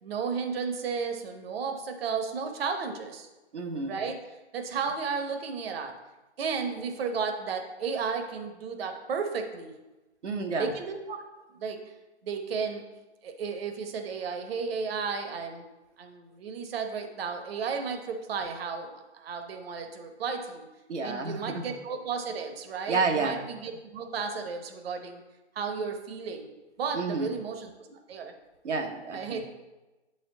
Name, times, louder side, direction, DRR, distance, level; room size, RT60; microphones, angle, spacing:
voice 1, 0.0-3.3 3.9-4.2 4.5-5.9 6.4-9.7 10.6-11.2 11.6-11.8 12.2-12.8 13.2-15.6 16.0-20.7 21.0-25.2 25.6-26.5 26.8-28.3 29.1-29.4, right 5 dB, 60° right, 6 dB, 0.9 m, -33 dB
voice 2, 3.5-4.0 10.2-10.7 20.9-21.6 22.9-23.4 26.9-27.3 28.6-29.4, right 4 dB, 90° right, 3 dB, 0.9 m, -30 dB
7.8 x 4.3 x 3.7 m, 1.1 s
hypercardioid pair, 130°, 34 cm